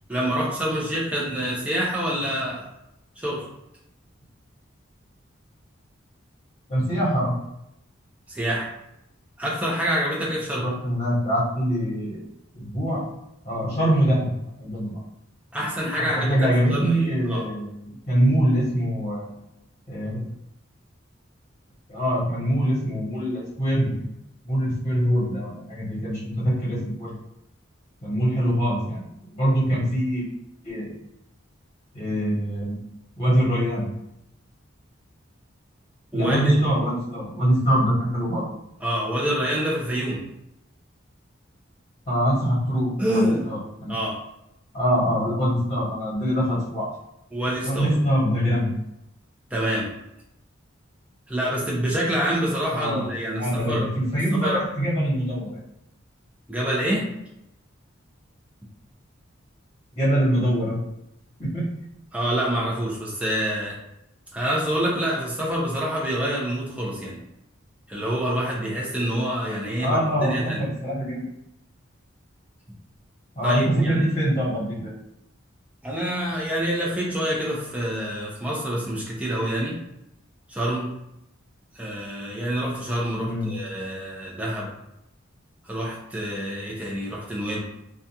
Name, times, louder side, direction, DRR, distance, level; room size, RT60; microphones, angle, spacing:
voice 1, 0.1-2.7 3.2-3.4 8.3-8.7 9.4-10.7 15.5-17.4 36.1-36.6 38.8-40.2 43.0-43.5 43.9-44.2 47.3-47.9 49.5-49.9 51.3-53.9 54.3-54.6 56.5-57.1 62.1-63.8 64.3-67.2 67.9-70.7 73.4-74.1 75.8-79.8 80.5-80.9 81.7-84.7 85.6-87.6, equal, 5° right, -5 dB, 0.5 m, -26 dB
voice 2, 6.7-7.3 10.6-12.2 12.5-13.0 13.4-14.3 14.6-15.0 16.1-19.3 19.9-20.2 21.9-24.0 24.4-27.1 28.0-29.0 29.3-30.2 30.6-30.9 31.9-32.8 33.2-33.9 36.1-38.5 42.1-44.0 44.7-46.9 47.6-48.7 52.7-53.1 53.4-55.6 59.9-60.8 61.4-61.7 69.8-71.3 73.3-74.9 83.2-83.5, equal, 35° left, -9 dB, 1.0 m, -23 dB
2.4 x 2.2 x 2.8 m, 0.85 s
head